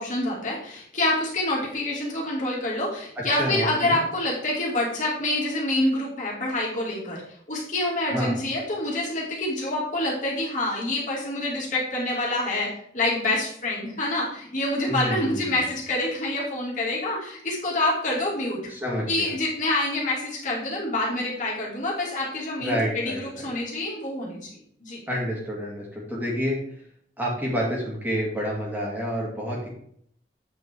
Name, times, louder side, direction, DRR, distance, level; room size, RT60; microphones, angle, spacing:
voice 1, 0.0-12.7 12.9-18.6 19.1-24.5 24.8-25.0, left 1 dB, 45° left, -5 dB, 2.6 m, -27 dB
voice 2, 3.3-4.0 8.1-8.3 14.9-15.6 18.7-19.3 22.6-23.5 25.1-26.6 27.2-29.7, equal, 10° right, -4 dB, 2.3 m, -28 dB
8.4 x 4.6 x 4.5 m, 0.65 s
head